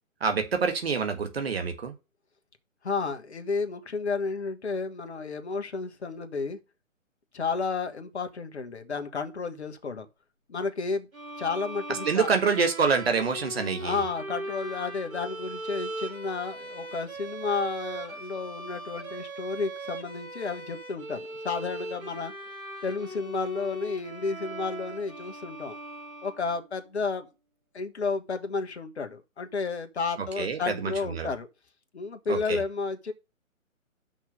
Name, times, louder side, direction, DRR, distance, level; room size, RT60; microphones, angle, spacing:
voice 1, 0.2-1.9 11.9-14.0 30.4-31.3 32.3-32.6, right 5 dB, 45° right, 1.7 m, -27 dB
voice 2, 2.8-6.6 7.3-10.1 10.5-11.1 11.4-12.3 13.8-22.3 22.8-25.8 26.2-27.3 27.7-31.5 31.9-33.1, left 4 dB, 50° left, 1.5 m, -32 dB
sound 1, 11.1-26.8, right 1 dB, 80° right, 2.6 m, -40 dB
6.5 x 6.0 x 5.4 m
figure-of-eight pair, 140°, 41 cm